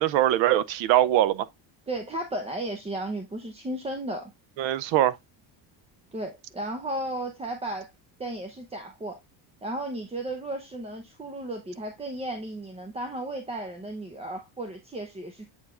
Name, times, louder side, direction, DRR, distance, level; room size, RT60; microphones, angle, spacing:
voice 1, 0.0-1.5 4.6-5.2, right 13 dB, 70° right, 0.6 m, -22 dB
voice 2, 1.9-4.3 6.1-7.9 8.2-9.2 9.6-15.5, right 1 dB, 15° right, 0.6 m, -34 dB
8.0 x 4.8 x 2.4 m
cardioid pair, 135°, 47 cm